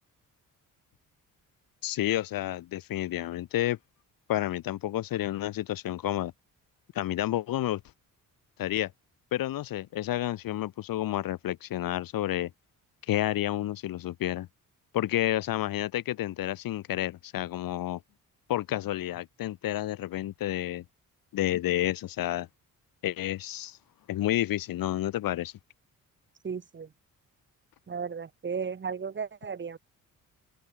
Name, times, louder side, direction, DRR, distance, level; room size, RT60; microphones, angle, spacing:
voice 1, 1.8-3.8 4.3-6.3 6.9-7.8 8.6-8.9 9.3-12.5 13.1-14.5 14.9-18.0 18.5-20.8 21.3-22.5 23.0-23.8 24.1-25.5, left 13 dB, 85° left, 1.6 m, -30 dB
voice 2, 26.4-26.9 27.9-29.8, right 6 dB, 35° right, 2.8 m, -35 dB
open air
cardioid pair, 140°, 34 cm